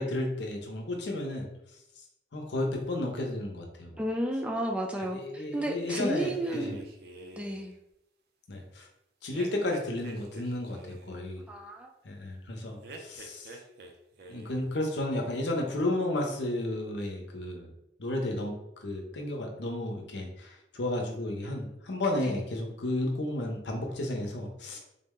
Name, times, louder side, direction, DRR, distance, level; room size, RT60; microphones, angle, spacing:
voice 1, 0.0-1.5 2.3-4.0 5.1-6.8 8.5-8.9 9.2-11.4 12.0-13.6 14.3-17.7 18.0-24.8, left 1 dB, 85° left, 1 dB, 0.7 m, -33 dB
voice 2, 4.0-6.8 7.3-7.7 11.5-11.9 22.3-22.4, right 1 dB, 5° right, 2 dB, 0.3 m, -32 dB
sound 1, 5.8-7.7 9.3-11.2 12.8-13.9 14.2-14.7, right 2 dB, 65° right, 0.5 m, -46 dB
3.7 x 2.1 x 3.6 m, 0.83 s
head